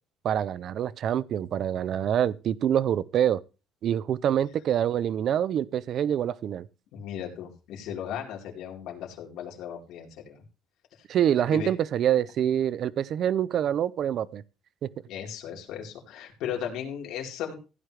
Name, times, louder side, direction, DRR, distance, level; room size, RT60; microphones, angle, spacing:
voice 1, 0.2-3.4 3.8-6.7 11.1-14.4 14.8-14.9, right 10 dB, 40° right, 0.5 m, -26 dB
voice 2, 6.9-10.4 11.5-11.7 15.1-17.6, left 9 dB, 65° left, 4.0 m, -36 dB
16.0 x 9.2 x 3.3 m
cardioid pair, 170°, 0 cm